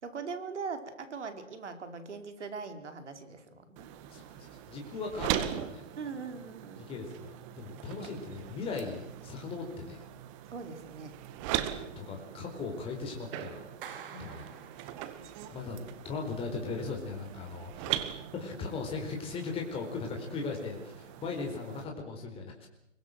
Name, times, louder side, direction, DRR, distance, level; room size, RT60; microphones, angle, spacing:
voice 1, 0.0-3.9 6.0-6.8 10.5-11.1 14.1-14.2 15.1-15.5, right 5 dB, 65° right, 8 dB, 4.8 m, -41 dB
sound 1, 3.8-21.8, right 11 dB, 25° right, 1.9 m, -40 dB
voice 2, 4.1-5.8 6.8-10.0 12.0-13.7 14.2-14.5 15.5-15.8 16.0-18.0 18.3-22.7, left 4 dB, 15° left, 2 dB, 4.4 m, -38 dB
Clapping, 13.8-15.5, right 8 dB, 45° right, 3.6 m, -47 dB
25.5 x 23.5 x 7.9 m, 0.78 s
figure-of-eight pair, 140°, 38 cm